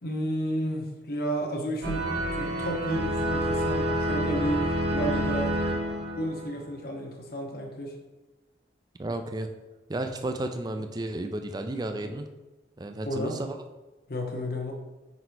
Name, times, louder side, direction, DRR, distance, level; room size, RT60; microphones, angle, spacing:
voice 1, 0.0-2.0 2.3-5.5 6.2-7.9 13.0-13.4 14.1-14.7, equal, 50° left, 1 dB, 1.0 m, -32 dB
sound 1, 1.8-6.7, right 1 dB, 85° right, 1.3 m, -28 dB
voice 2, 9.0-9.5 9.9-12.3 12.8-13.6, right 1 dB, 20° right, 7 dB, 0.4 m, -32 dB
5.3 x 4.1 x 4.5 m, 1.1 s
head